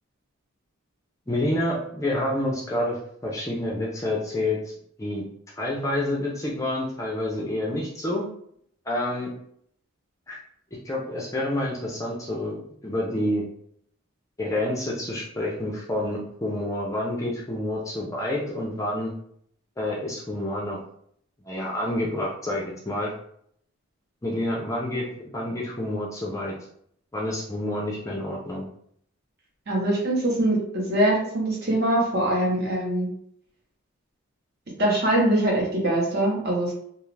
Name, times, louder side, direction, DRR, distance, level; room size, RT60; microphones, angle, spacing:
voice 1, 1.3-4.7 5.0-5.2 5.6-8.3 8.9-9.3 10.3-10.4 10.8-13.4 14.4-19.1 19.8-20.8 21.4-23.1 24.2-25.1 25.3-26.5 27.1-28.6, left 1 dB, 15° left, -3 dB, 0.4 m, -28 dB
voice 2, 29.7-33.1 34.8-36.7, right 1 dB, 50° right, -2 dB, 0.8 m, -23 dB
2.4 x 2.3 x 3.2 m, 0.67 s
head